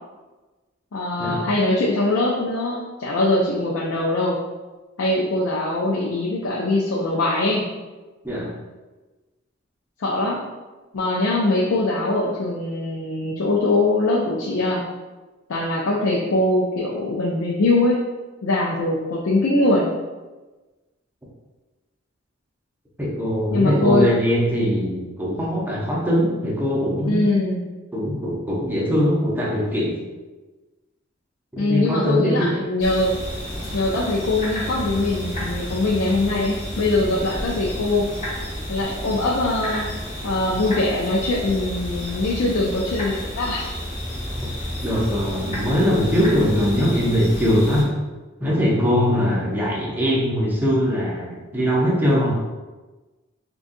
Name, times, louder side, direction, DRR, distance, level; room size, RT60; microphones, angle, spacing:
voice 1, 0.9-4.4 5.0-7.7 10.0-10.4 10.9-14.8 15.5-18.0 18.4-19.9 23.5-24.1 27.0-27.6 31.6-33.1 33.7-38.1 38.7-39.9 40.2-43.7, left 2 dB, 80° left, -3 dB, 0.4 m, -22 dB
voice 2, 23.0-27.4 27.9-30.0 31.5-32.5 44.8-47.9 48.4-52.4, equal, 10° right, -5 dB, 0.7 m, -21 dB
sound 1, 32.8-47.8, equal, 40° left, 1.0 m, -31 dB
3.8 x 2.3 x 2.6 m, 1.2 s
head